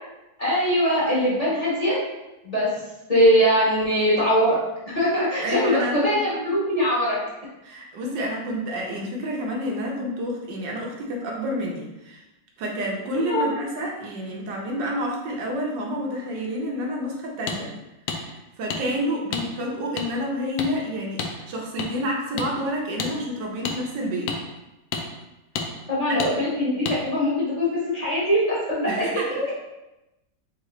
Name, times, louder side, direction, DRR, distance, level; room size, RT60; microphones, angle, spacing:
voice 1, 0.4-2.0 2.4-2.7 3.1-4.6 4.9-7.2 13.3-13.5 25.9-28.9, equal, 25° left, -9 dB, 1.2 m, -21 dB
voice 2, 5.4-6.0 7.6-12.2 12.6-17.7 18.2-24.3 26.1-26.2 28.9-29.5, equal, 90° right, -1 dB, 1.5 m, -29 dB
sound 1, 17.5-17.6 18.1-18.2 18.7-18.8 19.3-19.4 20.0-20.1 20.6-20.7 21.2-21.3 21.8-21.9 22.4-22.5 23.0-23.1 23.6-23.8 24.3-24.4 24.9-25.0 25.5-25.7 26.2-26.3 26.8-27.0, left 5 dB, 70° left, 1.0 m, -28 dB
3.8 x 3.7 x 3.1 m, 0.98 s
omnidirectional pair, 1.8 m